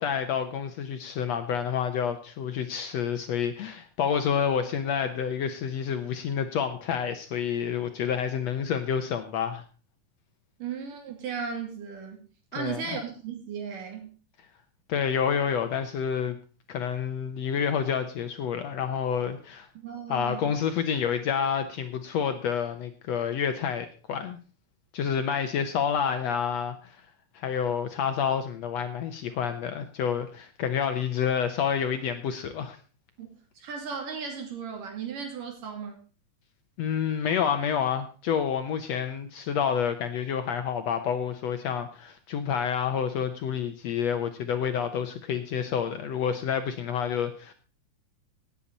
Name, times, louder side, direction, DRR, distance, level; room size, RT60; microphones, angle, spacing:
voice 1, 0.0-9.6 12.6-12.8 14.9-16.4 16.7-19.7 20.1-24.4 24.9-27.0 27.3-32.8 36.8-47.5, left 7 dB, 70° left, 8 dB, 1.7 m, -28 dB
voice 2, 10.6-12.3 12.5-14.1 19.8-20.5 33.2-33.3 33.6-36.0, right 6 dB, 75° right, 3 dB, 4.3 m, -36 dB
17.5 x 8.8 x 4.1 m, 0.37 s
omnidirectional pair, 3.8 m